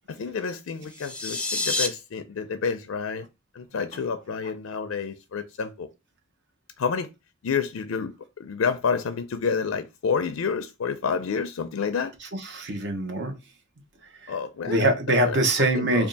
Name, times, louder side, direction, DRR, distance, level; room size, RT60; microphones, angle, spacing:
voice 1, 0.1-3.3 3.5-5.9 6.8-7.1 7.4-8.1 8.4-12.1 14.3-14.8 15.2-16.1, left 5 dB, 75° left, 0.4 m, -29 dB
sound 1, 0.8-1.9, left 2 dB, 5° left, 0.5 m, -28 dB
voice 2, 12.2-13.4 14.2-14.3 14.7-16.1, right 1 dB, 60° right, 0.9 m, -24 dB
3.4 x 2.4 x 3.9 m
head